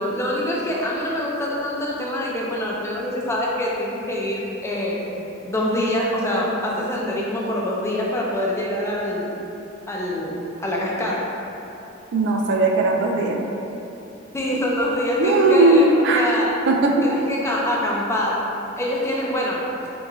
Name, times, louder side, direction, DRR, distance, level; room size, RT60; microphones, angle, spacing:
voice 1, 0.0-5.1 5.4-9.3 9.9-11.4 14.3-16.5 17.0-18.5 18.8-19.6, left 1 dB, 15° left, -4 dB, 0.4 m, -25 dB
voice 2, 12.1-13.4 15.2-16.3 16.7-17.1, right 2 dB, 60° right, 2 dB, 0.3 m, -18 dB
3.5 x 3.0 x 2.3 m, 3.0 s
head